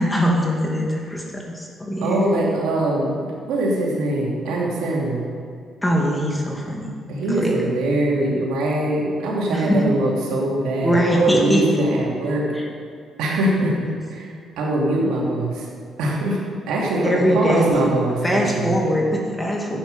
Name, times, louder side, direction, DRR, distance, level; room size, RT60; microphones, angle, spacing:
voice 1, 0.0-2.3 5.8-6.9 7.4-7.5 9.5-9.7 10.8-11.8 12.6-12.7 13.9-14.0 17.0-17.9 18.2-19.8, equal, 10° left, -1 dB, 2.3 m, -21 dB
voice 2, 2.0-5.3 7.1-12.5 13.2-13.7 14.1-15.7 16.0-16.4 16.7-18.7 19.7-19.8, right 1 dB, 90° right, -3 dB, 2.8 m, -22 dB
11.5 x 8.9 x 5.5 m, 2.2 s
cardioid pair, 90°, 0 cm